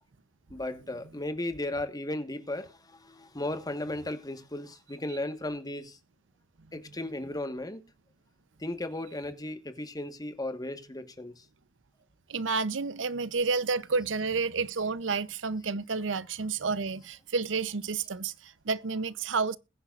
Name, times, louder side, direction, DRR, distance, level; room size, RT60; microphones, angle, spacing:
voice 1, 0.5-6.0 6.7-7.8 8.6-11.4, left 1 dB, 20° left, 1.5 m, -35 dB
voice 2, 12.3-19.6, right 4 dB, 75° right, 0.7 m, -30 dB
21.5 x 10.0 x 2.5 m
head